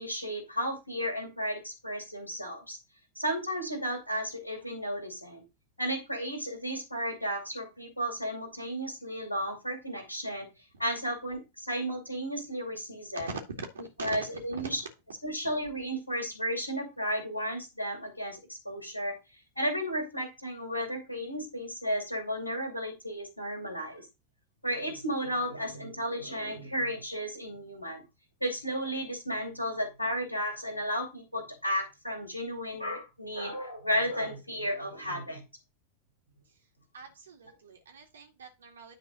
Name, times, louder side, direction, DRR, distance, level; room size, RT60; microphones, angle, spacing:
voice 1, 0.0-2.8 3.1-5.4 5.8-10.5 10.8-13.3 14.0-14.8 15.2-19.2 19.6-24.0 24.6-28.0 28.4-35.4, equal, 90° left, 4 dB, 2.4 m, -33 dB
voice 2, 13.1-14.8 36.9-38.9, right 4 dB, 70° right, 2 dB, 2.1 m, -42 dB
9.7 x 4.0 x 5.1 m, 0.25 s
figure-of-eight pair, 90°, 0 cm